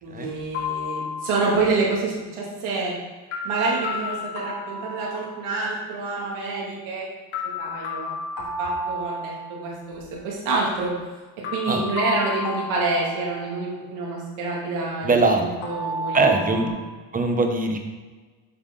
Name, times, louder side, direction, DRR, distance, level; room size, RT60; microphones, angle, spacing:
voice 1, 0.0-2.9 3.4-7.1 7.6-8.1 8.6-9.3 9.6-10.9 11.5-15.1 15.4-16.6, right 3 dB, 75° right, -4 dB, 2.5 m, -27 dB
sound 1, 0.5-1.7 3.3-5.6 7.3-9.6 11.4-13.8 15.6-16.7, left 2 dB, 75° left, 2.1 m, -31 dB
voice 2, 15.0-15.4 16.1-16.8 17.1-17.8, right 3 dB, 15° right, 4 dB, 0.8 m, -21 dB
7.5 x 5.8 x 3.9 m, 1.3 s
cardioid pair, 120°, 49 cm